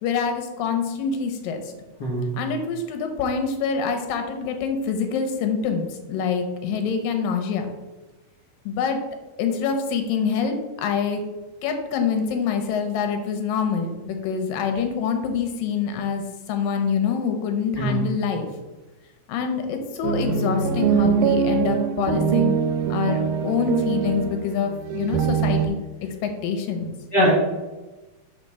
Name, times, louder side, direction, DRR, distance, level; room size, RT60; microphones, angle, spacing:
voice 1, 0.0-1.6 2.4-7.7 8.7-9.0 9.4-11.2 11.6-16.2 16.5-18.5 19.3-22.6 22.9-25.8 26.2-26.9, left 6 dB, 85° left, 5 dB, 2.6 m, -25 dB
voice 2, 2.0-2.3 17.8-18.0 27.1-27.3, equal, 65° left, -4 dB, 1.0 m, -21 dB
sound 1, 20.0-25.7, right 7 dB, 80° right, 1.9 m, -23 dB
6.6 x 4.0 x 6.2 m, 1.1 s
omnidirectional pair, 3.9 m